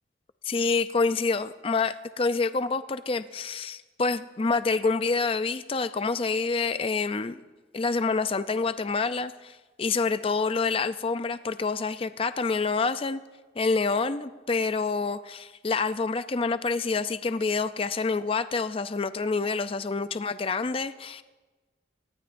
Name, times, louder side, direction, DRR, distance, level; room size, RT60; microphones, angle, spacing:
voice 1, 0.4-7.4 7.7-13.2 13.6-21.2, left 4 dB, 30° left, 12 dB, 0.4 m, -27 dB
24.5 x 20.0 x 2.6 m, 1.2 s
head